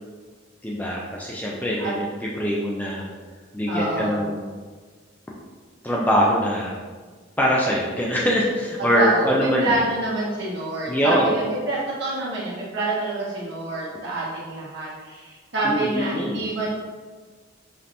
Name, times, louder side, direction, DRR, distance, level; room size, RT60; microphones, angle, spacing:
voice 1, 0.6-2.1 2.4-3.1 3.5-4.4 5.8-6.8 7.4-9.8 10.9-11.3 15.6-16.5, equal, 10° left, -4 dB, 0.3 m, -23 dB
voice 2, 3.7-4.2 8.9-16.7, right 2 dB, 55° right, -7 dB, 1.3 m, -27 dB
5.1 x 2.8 x 2.6 m, 1.5 s
head